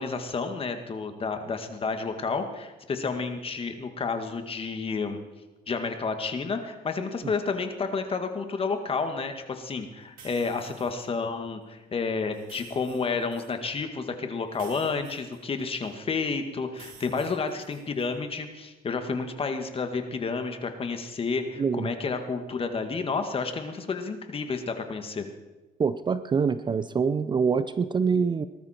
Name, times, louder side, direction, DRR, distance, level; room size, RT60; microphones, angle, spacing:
voice 1, 0.0-5.2 5.7-25.3, left 4 dB, 35° left, 6 dB, 1.9 m, -30 dB
sound 1, 10.2-11.1 12.3-13.5 14.5-15.9 16.7-18.1, right 5 dB, 55° right, 3.7 m, -51 dB
voice 2, 21.6-21.9 25.8-28.5, right 5 dB, 25° right, 14 dB, 0.5 m, -25 dB
19.5 x 13.0 x 4.4 m, 1.1 s
cardioid pair, 110°, 17 cm